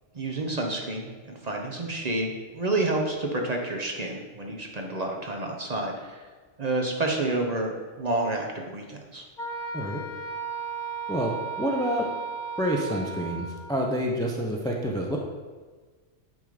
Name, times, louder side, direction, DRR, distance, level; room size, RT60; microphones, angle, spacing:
voice 1, 0.1-6.2 6.6-9.2, right 2 dB, 35° right, 1 dB, 0.9 m, -29 dB
Wind instrument woodwind instrument, 9.4-13.7, right 5 dB, 45° left, 1.3 m, -35 dB
voice 2, 11.1-12.1 12.6-15.2, equal, 5° left, 0 dB, 0.5 m, -28 dB
9.7 x 3.6 x 5.1 m, 1.4 s
omnidirectional pair, 1.2 m